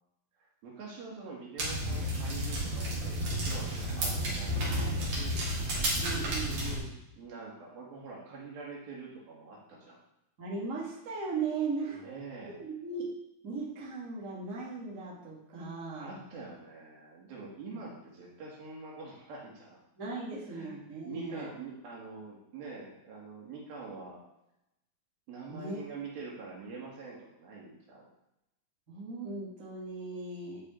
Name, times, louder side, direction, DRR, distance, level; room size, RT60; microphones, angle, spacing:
voice 1, 0.6-5.5 7.2-10.0 11.9-12.6 16.0-19.8 20.5-20.8 21.1-24.2 25.3-28.1, right 3 dB, 75° right, -4 dB, 3.9 m, -45 dB
sound 1, 1.6-6.8, equal, 60° right, 3.5 m, -32 dB
voice 2, 6.0-6.9 10.4-12.2 12.5-13.1 13.4-16.2 20.0-21.5 25.5-25.8 28.9-30.6, right 4 dB, 25° right, -5 dB, 2.3 m, -38 dB
11.5 x 5.4 x 4.6 m, 0.86 s
omnidirectional pair, 4.2 m